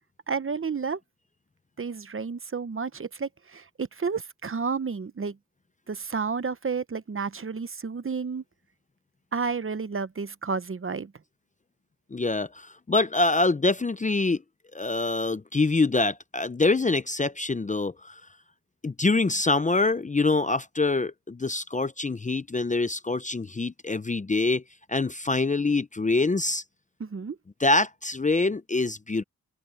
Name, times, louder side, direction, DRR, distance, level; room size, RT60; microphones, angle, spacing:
voice 1, 0.3-1.0 1.8-5.4 5.9-8.4 9.3-11.1 27.0-27.4, right 5 dB, 40° right, 0.9 m, -31 dB
voice 2, 12.1-14.4 14.7-18.2 18.8-24.6 24.9-26.6 27.6-29.2, left 3 dB, 20° left, 0.6 m, -25 dB
open air
cardioid pair, 80°, 35 cm